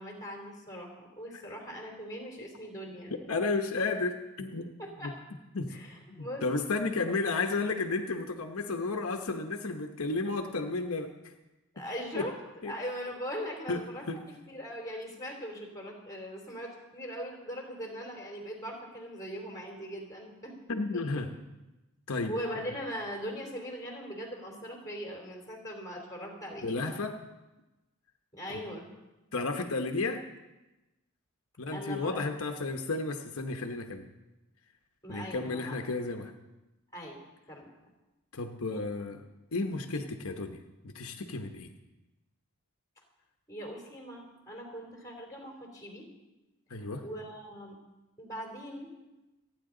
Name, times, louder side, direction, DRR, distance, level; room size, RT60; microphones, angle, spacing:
voice 1, 0.0-3.1 4.8-5.2 5.7-6.5 11.7-12.3 12.6-14.0 14.5-20.5 20.9-21.2 22.3-26.8 28.3-28.9 31.7-32.2 35.0-35.8 36.9-37.2 37.5-37.7 38.7-38.8 43.5-46.1 46.7-47.7 48.2-48.9, equal, 15° left, 0 dB, 3.1 m, -40 dB
voice 2, 3.3-4.7 5.0-5.1 5.5-5.8 6.1-11.3 12.1-12.3 12.6-12.8 13.7-14.2 20.7-21.3 22.1-22.3 26.6-27.2 29.3-30.3 31.6-34.1 35.1-36.3 38.3-39.2 39.5-41.7 46.7-47.0, left 3 dB, 70° left, 4 dB, 1.0 m, -33 dB
27.5 x 9.8 x 3.9 m, 1.1 s
head